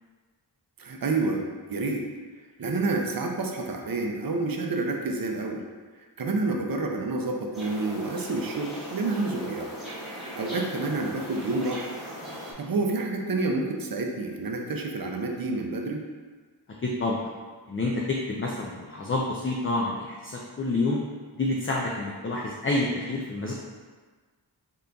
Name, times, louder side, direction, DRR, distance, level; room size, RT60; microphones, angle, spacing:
voice 1, 0.8-1.4 1.7-2.1 2.6-5.6 6.2-9.7 10.1-11.9 12.6-16.0, right 3 dB, 55° right, 2 dB, 0.6 m, -29 dB
sound 1, 7.5-12.5, equal, ahead, 1.1 m, -39 dB
voice 2, 16.8-17.3 17.7-21.0 21.4-23.5, left 2 dB, 30° left, -2 dB, 0.4 m, -28 dB
3.8 x 3.7 x 2.3 m, 1.4 s
wide cardioid pair, 70°, 44 cm